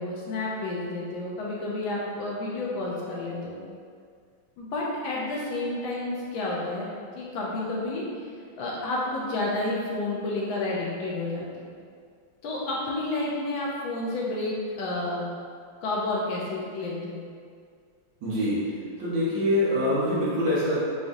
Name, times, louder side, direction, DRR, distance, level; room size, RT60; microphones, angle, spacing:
voice 1, 0.0-3.6 4.6-8.0 8.6-11.7 12.4-15.3 15.8-17.2, left 2 dB, 75° left, -4 dB, 1.4 m, -30 dB
voice 2, 18.2-18.7 19.0-20.8, left 1 dB, 65° right, -10 dB, 1.9 m, -25 dB
6.9 x 2.5 x 2.6 m, 2.1 s
omnidirectional pair, 2.4 m